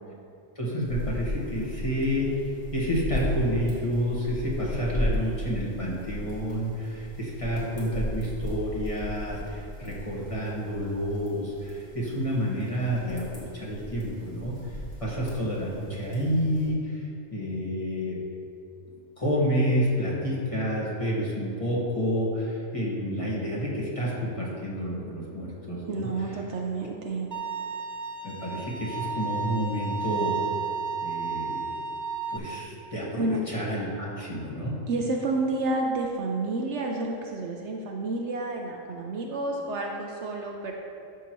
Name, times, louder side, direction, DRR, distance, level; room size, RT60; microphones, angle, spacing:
voice 1, 0.5-2.3 2.7-17.0 17.3-18.2 19.2-26.1 28.2-30.3 31.0-31.7 32.3-34.7, equal, 25° left, -6 dB, 1.5 m, -29 dB
sound 1, 0.9-16.7, left 1 dB, 55° left, 2.2 m, -36 dB
voice 2, 25.9-27.3 33.1-33.4 34.9-40.7, right 2 dB, 65° right, 1 dB, 0.9 m, -30 dB
Bowed string instrument, 27.3-32.4, right 5 dB, 45° right, 0.6 m, -32 dB
12.0 x 5.9 x 3.0 m, 2.5 s
omnidirectional pair, 1.4 m